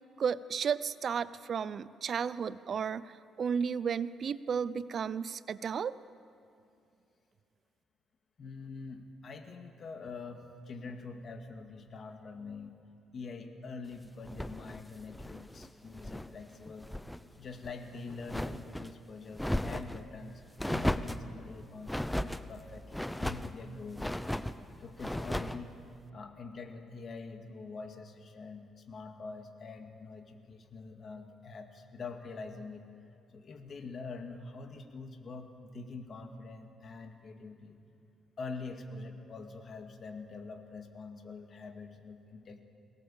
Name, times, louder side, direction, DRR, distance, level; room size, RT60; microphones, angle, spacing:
voice 1, 0.2-3.1 3.4-6.0, right 7 dB, 55° right, 17 dB, 0.6 m, -33 dB
voice 2, 8.4-12.8 13.1-16.9 17.3-24.0 24.8-25.8 26.1-32.9 33.3-37.8 38.4-42.6, left 4 dB, 50° left, 5 dB, 2.1 m, -45 dB
sound 1, 14.2-16.3 16.6-17.2 17.6-18.9 19.3-20.0 20.6-21.3 21.9-22.4 22.9-23.5 23.9-24.6 25.0-25.6, left 1 dB, 5° left, 0.7 m, -35 dB
22.5 x 18.5 x 7.3 m, 2.5 s
cardioid pair, 90°, 0 cm